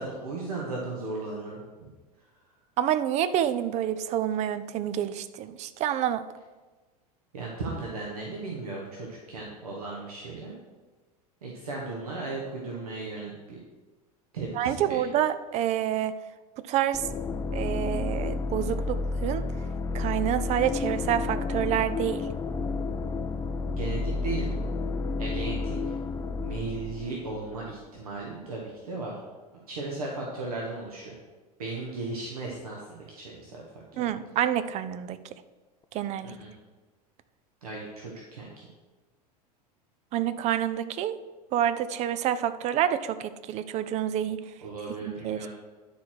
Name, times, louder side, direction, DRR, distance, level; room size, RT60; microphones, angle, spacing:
voice 1, 0.0-1.9 7.3-10.6 11.4-13.6 14.3-15.1 23.7-24.6 25.2-25.9 26.4-29.1 29.7-31.1 31.6-34.1 36.2-36.5 37.6-38.7 44.6-45.5, right 3 dB, 70° right, -2 dB, 1.5 m, -36 dB
voice 2, 2.8-6.3 14.5-16.2 16.7-17.0 17.5-19.4 19.9-22.3 34.0-35.2 35.9-36.3 40.1-41.2 41.5-44.4 45.0-45.5, right 10 dB, 35° right, 13 dB, 0.5 m, -28 dB
sound 1, 16.9-27.7, left 3 dB, 15° left, 0.5 m, -31 dB
10.0 x 4.7 x 6.2 m, 1.3 s
figure-of-eight pair, 80°, 20 cm